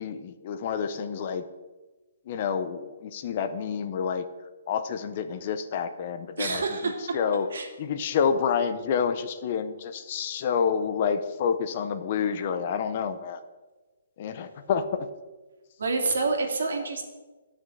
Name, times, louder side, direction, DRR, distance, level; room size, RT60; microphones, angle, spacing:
voice 1, 0.0-1.4 2.3-4.2 4.7-6.6 7.1-7.5 7.8-13.4 14.2-15.1, left 7 dB, 35° left, 10 dB, 0.7 m, -28 dB
voice 2, 6.4-7.1 7.5-7.7 15.8-17.0, right 3 dB, 70° right, 2 dB, 2.6 m, -27 dB
11.0 x 6.2 x 7.9 m, 1.2 s
hypercardioid pair, 170°, 0 cm